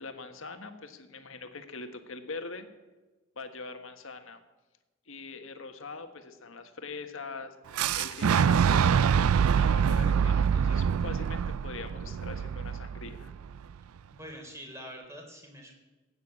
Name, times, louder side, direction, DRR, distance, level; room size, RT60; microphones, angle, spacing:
voice 1, 0.0-2.7 3.3-4.4 5.1-9.2 9.5-13.3, left 3 dB, 70° left, 7 dB, 1.5 m, -43 dB
Boom, 7.8-13.6, right 7 dB, 85° right, 0.4 m, -25 dB
voice 2, 14.1-15.7, equal, 15° right, 1 dB, 3.5 m, -45 dB
15.5 x 9.1 x 8.8 m, 1.2 s
head